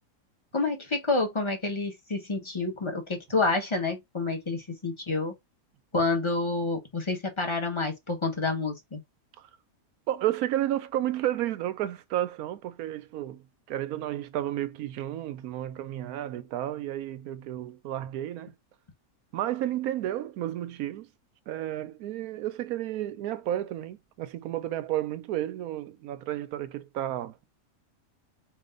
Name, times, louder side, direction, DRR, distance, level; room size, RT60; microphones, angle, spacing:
voice 1, 0.5-5.4 5.9-9.0, left 3 dB, 20° left, 1.2 m, -28 dB
voice 2, 10.1-18.5 19.3-21.1 21.5-27.4, right 13 dB, 85° right, 1.1 m, -32 dB
4.4 x 2.9 x 3.7 m
omnidirectional pair, 1.5 m